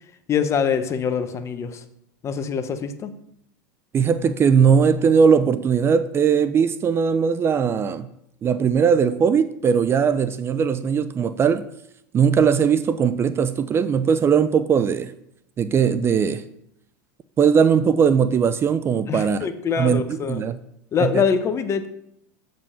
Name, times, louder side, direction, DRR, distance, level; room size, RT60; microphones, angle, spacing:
voice 1, 0.3-1.8 2.2-3.1 19.1-20.4 20.9-21.9, left 6 dB, 30° left, 11 dB, 0.8 m, -24 dB
voice 2, 3.9-8.1 8.4-11.6 12.1-15.1 15.6-16.4 17.4-19.4 19.8-20.6 21.0-21.2, right 6 dB, 25° right, 12 dB, 0.4 m, -19 dB
7.1 x 5.2 x 5.6 m, 0.76 s
hypercardioid pair, 105°, 9 cm